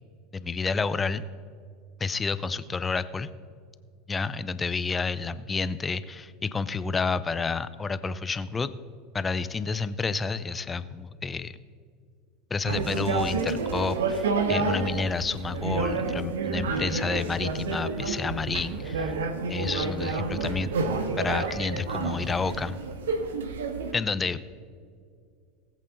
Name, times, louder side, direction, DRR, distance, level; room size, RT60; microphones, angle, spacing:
voice 1, 0.3-1.2 2.0-3.3 4.1-8.7 9.1-11.5 12.5-19.1 19.5-20.7 21.2-22.8 23.9-24.4, left 4 dB, 20° left, 14 dB, 0.6 m, -30 dB
sound 1, 12.7-23.9, right 4 dB, 70° right, 1.1 m, -29 dB
19.5 x 8.3 x 4.0 m, 2.2 s
figure-of-eight pair, 75°, 0 cm